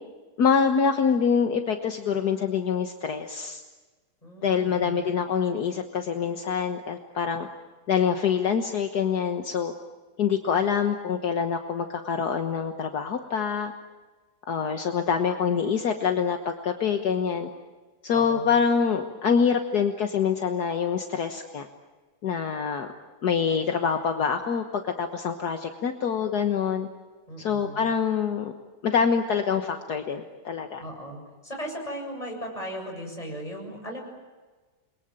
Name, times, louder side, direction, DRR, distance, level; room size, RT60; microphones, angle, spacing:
voice 1, 0.4-3.6 4.4-7.5 7.9-9.7 10.2-13.7 14.5-17.5 18.0-21.7 22.2-22.9 23.2-26.9 27.4-28.5 28.8-30.8, left 6 dB, 65° left, 5 dB, 1.8 m, -25 dB
voice 2, 4.2-5.1 18.1-18.6 27.3-27.9 30.7-34.0, equal, 20° left, 1 dB, 7.4 m, -37 dB
29.0 x 22.5 x 9.0 m, 1.3 s
omnidirectional pair, 1.8 m